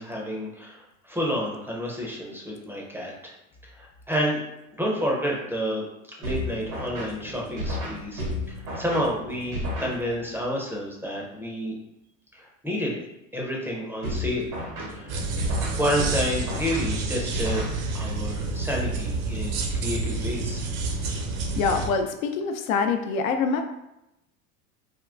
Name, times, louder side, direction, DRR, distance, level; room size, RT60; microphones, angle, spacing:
voice 1, 0.0-3.3 3.7-4.4 4.8-5.9 6.2-11.7 12.3-13.0 13.3-14.5 14.9-15.2 15.7-17.7 17.9-20.7, equal, 5° right, -3 dB, 0.5 m, -30 dB
sound 1, 6.2-10.4 14.0-18.2, left 1 dB, 85° right, 1.3 m, -33 dB
sound 2, 15.1-21.9, right 3 dB, 50° right, 0.7 m, -29 dB
voice 2, 21.6-23.6, left 5 dB, 75° left, 6 dB, 0.5 m, -25 dB
3.6 x 2.2 x 2.4 m, 0.88 s
hypercardioid pair, 95°, 42 cm